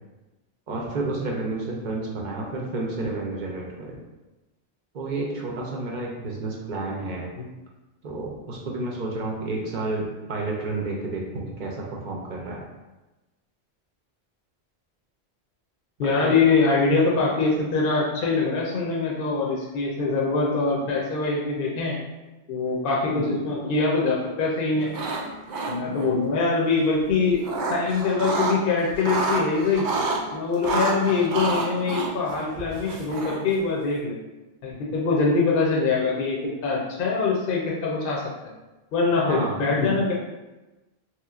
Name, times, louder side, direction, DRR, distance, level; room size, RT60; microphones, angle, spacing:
voice 1, 0.7-4.0 4.9-7.3 8.0-12.6 16.0-16.4 39.2-39.6, right 2 dB, 55° right, -2 dB, 0.6 m, -30 dB
voice 2, 16.0-22.0 22.5-24.9 25.7-27.4 27.7-29.9 30.3-34.2 34.6-38.2 38.9-40.1, left 4 dB, 65° left, -3 dB, 0.7 m, -23 dB
sound 1, 24.8-25.2 25.5-26.1 27.1-28.6 28.9-30.2 30.6-33.5, right 3 dB, 90° right, 0.9 m, -28 dB
3.0 x 2.9 x 2.4 m, 1.1 s
omnidirectional pair, 1.1 m